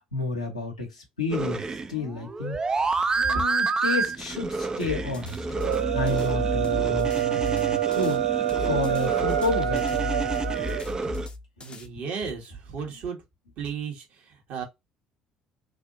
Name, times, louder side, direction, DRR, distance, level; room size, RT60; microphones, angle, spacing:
voice 1, 0.0-2.6 3.2-5.5 5.9-8.2 8.6-10.0 11.9-12.1, left 3 dB, 85° left, 1.0 m, -31 dB
sound 1, 1.3-11.3, right 4 dB, 20° right, 0.5 m, -30 dB
sound 2, 4.8-8.2 8.5-11.9, left 2 dB, 30° left, 0.7 m, -35 dB
sound 3, 5.5-10.8, right 12 dB, 70° right, 0.6 m, -26 dB
voice 2, 11.6-13.2 13.6-14.6, right 6 dB, 55° right, 1.5 m, -35 dB
3.3 x 2.6 x 2.6 m
figure-of-eight pair, 55°, 3 cm